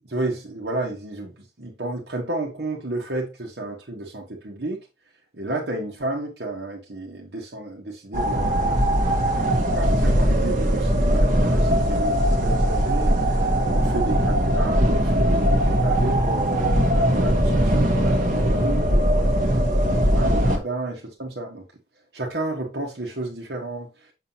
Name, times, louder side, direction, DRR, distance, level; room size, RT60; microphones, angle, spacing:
voice 1, 0.1-4.8 5.3-8.8 9.5-21.7 22.1-24.1, right 2 dB, 65° right, 1.3 m, -31 dB
sound 1, 8.1-20.6, equal, 45° right, 1.2 m, -20 dB
6.6 x 5.6 x 2.8 m
head